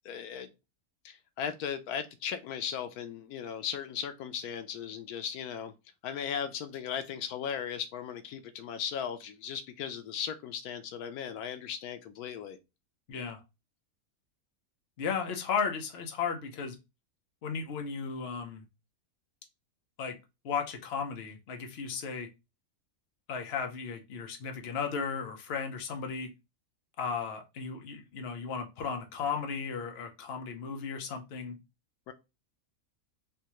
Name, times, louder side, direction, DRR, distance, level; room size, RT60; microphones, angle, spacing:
voice 1, 0.0-0.5 1.0-5.7 6.0-12.6 32.1-32.2, left 8 dB, 90° left, 1.1 m, -37 dB
voice 2, 13.1-13.4 15.0-16.7 17.4-18.6 20.0-20.1 20.4-22.3 23.3-26.3 27.0-31.6, left 6 dB, 55° left, 0.9 m, -35 dB
3.3 x 2.7 x 2.9 m
omnidirectional pair, 1.5 m